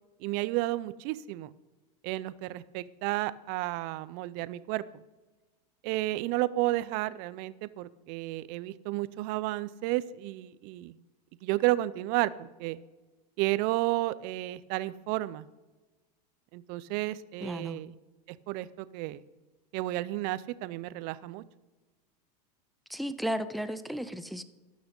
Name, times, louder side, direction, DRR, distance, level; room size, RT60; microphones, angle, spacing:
voice 1, 0.2-1.5 2.0-4.8 5.8-10.9 11.4-12.8 13.4-15.5 16.5-17.9 18.3-19.2 19.7-21.4, right 17 dB, 45° right, 17 dB, 0.6 m, -32 dB
voice 2, 17.4-17.8 22.9-24.4, equal, ahead, 11 dB, 0.4 m, -34 dB
12.0 x 6.3 x 5.3 m, 1.2 s
supercardioid pair, 125°, 21 cm